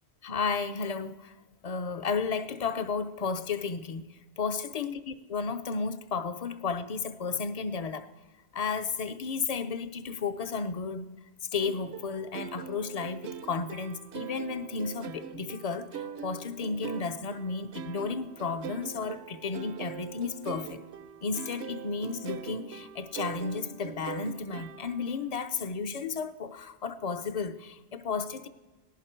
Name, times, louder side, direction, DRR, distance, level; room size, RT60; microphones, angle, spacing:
voice 1, 0.2-1.3 1.6-4.0 4.4-8.1 8.5-11.1 11.5-20.8 21.2-28.5, left 5 dB, 45° left, 12 dB, 0.5 m, -33 dB
sound 1, 11.6-25.2, right 7 dB, 80° right, 0.9 m, -42 dB
18.5 x 11.0 x 4.4 m, 1.2 s
omnidirectional pair, 1.1 m